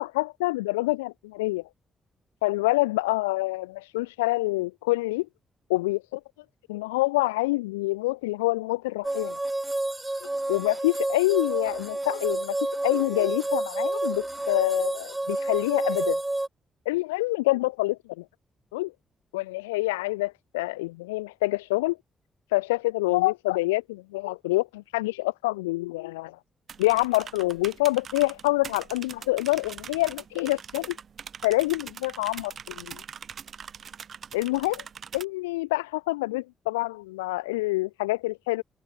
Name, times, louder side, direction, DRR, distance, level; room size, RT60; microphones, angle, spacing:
voice 1, 0.0-1.6 2.4-5.3 5.7-6.2 6.7-9.4 10.2-16.2 16.9-18.2 18.7-18.9 19.3-22.0 22.5-26.4 26.8-31.0 31.4-33.0 34.3-34.8 35.1-38.6, left 20 dB, 85° left, 0.3 m, -26 dB
sound 1, 9.0-16.5, right 2 dB, 20° right, 1.5 m, -29 dB
sound 2, 26.7-35.2, right 7 dB, 55° right, 1.3 m, -42 dB
open air
hypercardioid pair, 40°, 0 cm